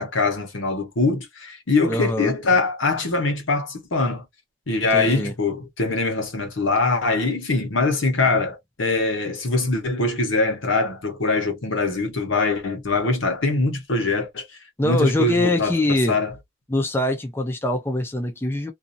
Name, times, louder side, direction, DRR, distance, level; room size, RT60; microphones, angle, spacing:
voice 1, 0.0-4.2 4.7-14.5 14.8-16.3, left 3 dB, 85° left, 1.0 m, -23 dB
voice 2, 1.9-2.3 4.9-5.3 14.8-16.2 16.7-18.7, left 1 dB, 10° left, 0.4 m, -23 dB
2.6 x 2.4 x 2.5 m
head